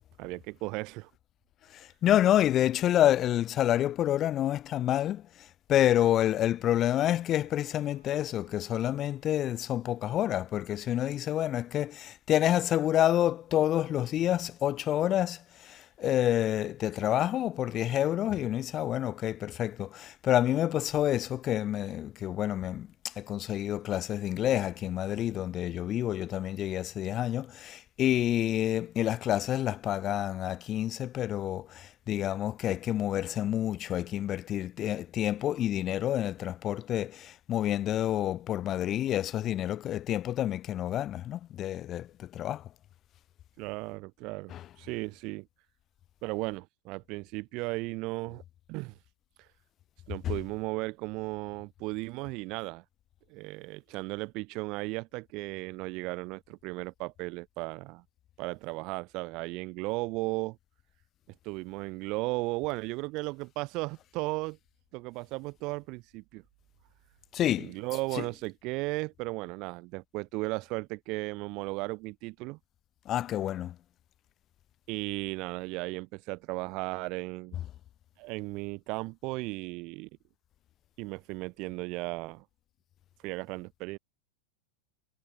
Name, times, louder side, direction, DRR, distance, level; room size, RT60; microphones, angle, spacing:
voice 1, 0.2-1.1 43.6-45.5 46.2-48.4 48.7-48.9 50.1-52.8 53.3-58.0 58.4-60.6 61.4-64.6 64.9-66.4 67.6-72.6 74.9-77.6 78.2-80.1 81.0-82.4 83.2-84.0, right 24 dB, 40° right, 0.3 m, -35 dB
voice 2, 1.7-42.7 44.5-44.7 67.3-67.7 68.1-68.2 73.1-73.8, left 12 dB, 30° left, 0.5 m, -28 dB
sound 1, 6.1-11.2, right 4 dB, 75° right, 4.3 m, -67 dB
figure-of-eight pair, 90°, 0 cm